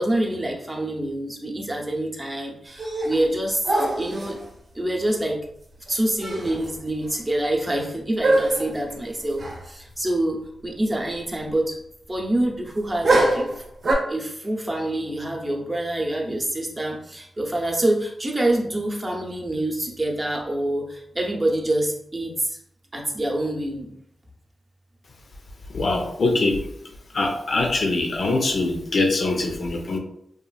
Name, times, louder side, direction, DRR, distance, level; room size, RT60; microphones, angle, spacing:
voice 1, 0.0-3.7 4.0-4.4 4.7-5.4 5.9-10.4 10.6-11.8 12.1-13.6 14.1-22.6 22.9-23.9, right 1 dB, 30° right, 0 dB, 0.7 m, -26 dB
sound 1, 2.7-3.3 3.6-4.4 5.9-6.0 6.2-6.7 7.0-7.1 8.2-8.8 9.4-9.6 9.9-10.0 13.0-13.9, right 2 dB, 70° right, 0.7 m, -23 dB
voice 2, 25.7-26.7 27.1-30.0, left 2 dB, 65° left, 2 dB, 0.5 m, -23 dB
2.9 x 2.4 x 2.3 m, 0.74 s
cardioid pair, 60°, 0 cm